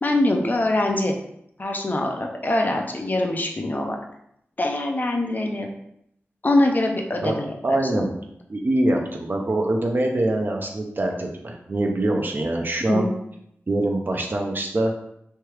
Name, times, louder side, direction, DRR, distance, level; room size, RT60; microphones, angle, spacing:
voice 1, 0.0-1.1 1.6-4.0 4.6-5.7 6.4-7.5 12.9-13.1, left 1 dB, 40° left, 2 dB, 0.5 m, -23 dB
voice 2, 7.6-8.1 8.5-13.1 13.7-14.9, right 1 dB, 45° right, 2 dB, 0.5 m, -24 dB
3.2 x 2.3 x 3.0 m, 0.74 s
wide cardioid pair, 60°, 5 cm